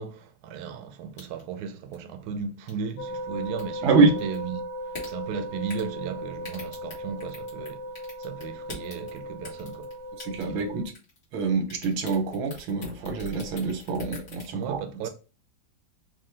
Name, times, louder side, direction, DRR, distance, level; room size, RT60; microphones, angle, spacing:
voice 1, 0.0-4.6 5.1-7.8 8.2-9.9 10.5-10.9 14.5-15.1, right 6 dB, 75° right, 0.9 m, -35 dB
sound 1, 1.2-1.5 1.9-2.0 2.7-2.9 3.4-3.6 4.2-4.4 4.9-5.1 5.7-5.9 6.4-7.7 8.0-9.2 9.4-9.9 10.2-10.7 10.9-11.4 11.7-14.5, left 3 dB, 50° left, 1.8 m, -42 dB
sound 2, 3.0-10.9, equal, 65° left, 1.0 m, -37 dB
voice 2, 3.8-4.2 10.2-10.8 11.3-14.8, right 3 dB, 90° right, 1.6 m, -25 dB
4.7 x 2.1 x 3.2 m
omnidirectional pair, 2.1 m